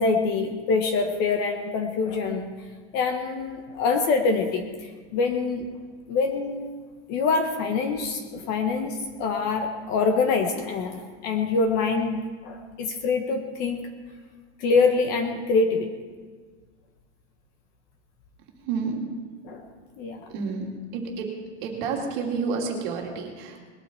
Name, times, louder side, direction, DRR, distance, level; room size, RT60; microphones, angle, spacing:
voice 1, 0.0-2.5 2.9-5.6 6.1-6.7 7.1-13.9 14.6-15.9 19.4-19.6 20.0-20.2, left 4 dB, 30° left, 5 dB, 1.0 m, -25 dB
voice 2, 18.7-19.0 20.3-20.7 20.9-21.3 21.6-23.6, right 5 dB, 45° right, 0 dB, 2.8 m, -29 dB
21.0 x 12.0 x 4.4 m, 1.5 s
supercardioid pair, 180°, 35 cm